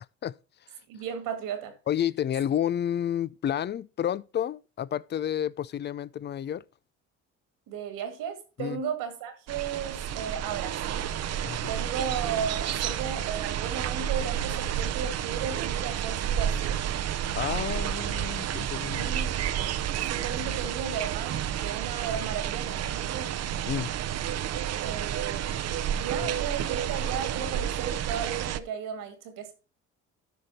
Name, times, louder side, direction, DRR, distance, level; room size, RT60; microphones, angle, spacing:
voice 1, 0.9-1.8 7.7-11.2 11.7-16.8 19.0-19.5 20.0-23.3 24.8-29.5, right 7 dB, 75° right, 2.1 m, -35 dB
voice 2, 1.9-6.6 8.6-8.8 11.4-11.6 17.3-19.1 23.7-23.9 26.2-26.3, left 10 dB, 35° left, 0.4 m, -30 dB
sound 1, 9.5-28.6, right 10 dB, 50° right, 0.7 m, -30 dB
13.0 x 5.1 x 4.1 m
supercardioid pair, 70°, 33 cm